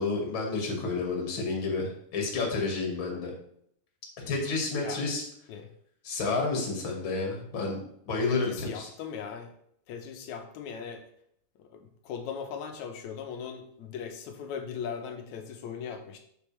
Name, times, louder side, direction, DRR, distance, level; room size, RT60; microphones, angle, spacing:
voice 1, 0.0-3.3 4.2-5.3 6.0-7.8 8.1-8.9, left 3 dB, 45° left, 0 dB, 2.4 m, -30 dB
voice 2, 8.3-9.5 9.9-11.0 11.6-16.2, left 7 dB, 75° left, 5 dB, 2.2 m, -39 dB
7.2 x 6.8 x 3.3 m, 0.69 s
omnidirectional pair, 3.5 m